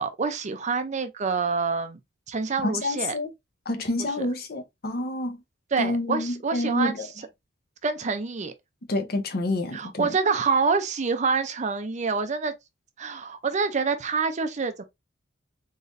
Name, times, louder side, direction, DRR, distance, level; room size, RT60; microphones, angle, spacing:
voice 1, 0.0-2.0 2.3-3.1 4.2-4.3 5.7-6.9 7.8-8.5 9.7-12.5 13.0-14.8, right 4 dB, 40° right, 0.5 m, -26 dB
voice 2, 2.6-3.3 3.7-5.4 5.8-7.1 8.9-10.1, left 2 dB, 55° left, 0.8 m, -28 dB
3.9 x 3.1 x 2.6 m
head